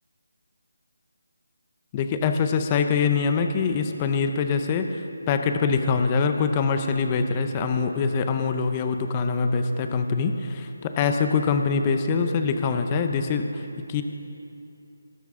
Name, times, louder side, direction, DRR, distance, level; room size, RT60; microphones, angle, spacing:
voice 1, 1.9-5.0 5.3-13.6 13.9-14.0, left 5 dB, 15° left, 6 dB, 0.6 m, -24 dB
21.0 x 13.5 x 3.7 m, 2.7 s
figure-of-eight pair, 175°, 0 cm